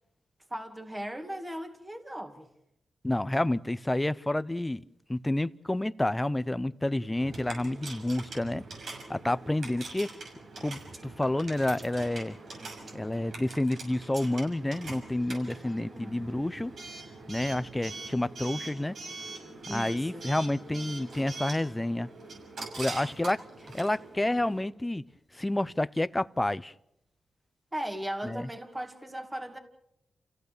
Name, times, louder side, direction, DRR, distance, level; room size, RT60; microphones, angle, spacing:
voice 1, 0.5-2.5 15.6-16.2 19.7-20.2 27.7-29.6, right 1 dB, 15° right, 2.3 m, -38 dB
voice 2, 3.0-4.8 5.1-8.6 9.1-10.1 10.6-12.4 12.9-16.7 17.3-19.0 19.7-22.1 22.8-25.0 25.3-26.7 28.2-28.5, left 1 dB, 15° left, 0.7 m, -29 dB
Coin (dropping) / Alarm, 7.1-24.6, right 3 dB, 70° right, 6.5 m, -43 dB
sound 1, 10.2-15.8, right 2 dB, 40° right, 4.3 m, -58 dB
28.5 x 16.5 x 6.8 m
cardioid pair, 75°, 0 cm